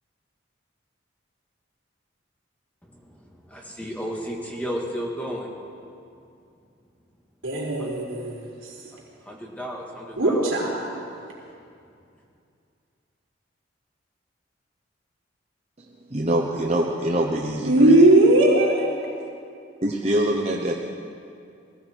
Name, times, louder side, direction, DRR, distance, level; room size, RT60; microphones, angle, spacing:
voice 1, 2.8-5.5 7.8-7.9 9.2-10.5, equal, 5° left, -2 dB, 1.9 m, -33 dB
voice 2, 7.4-8.4 10.2-10.8 17.6-18.8, right 1 dB, 85° right, -4 dB, 3.8 m, -18 dB
voice 3, 16.1-18.0 19.8-20.8, right 1 dB, 35° right, 0 dB, 0.8 m, -24 dB
19.5 x 15.0 x 4.6 m, 2.4 s
head